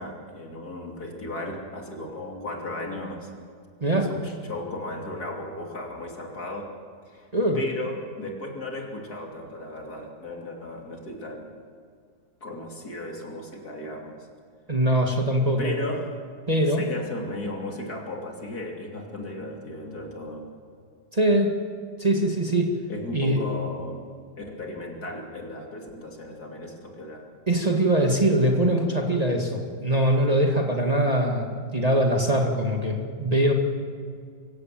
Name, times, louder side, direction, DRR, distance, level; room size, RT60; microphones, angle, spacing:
voice 1, 0.0-3.3 3.9-6.7 7.1-7.3 7.5-11.5 12.4-14.3 15.6-16.2 16.7-20.5 22.9-24.0 24.4-27.2, left 1 dB, 65° left, 1 dB, 3.4 m, -35 dB
voice 2, 3.8-4.1 7.3-7.6 14.7-15.7 16.5-16.8 21.1-21.5 22.0-22.7 23.1-23.4 27.5-33.5, right 1 dB, 25° right, 1 dB, 1.9 m, -22 dB
24.5 x 16.0 x 7.6 m, 2.1 s
omnidirectional pair, 1.8 m